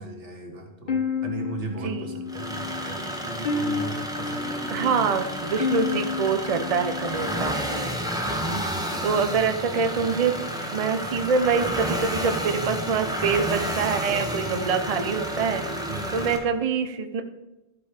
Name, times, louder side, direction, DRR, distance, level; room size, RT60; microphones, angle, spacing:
voice 1, 0.0-5.1 8.3-9.2 14.5-14.6 15.9-16.2, right 2 dB, 90° right, 1 dB, 2.0 m, -37 dB
sound 1, 0.9-8.0, left 5 dB, 45° left, 1.1 m, -31 dB
voice 2, 1.7-2.2 4.7-7.9 8.2-8.4 9.0-10.4 10.7-15.6 16.1-17.2, right 5 dB, 40° right, 7 dB, 0.7 m, -25 dB
sound 2, 2.3-16.4, equal, 5° right, 1.2 m, -31 dB
13.0 x 5.2 x 5.1 m, 1.0 s
omnidirectional pair, 1.2 m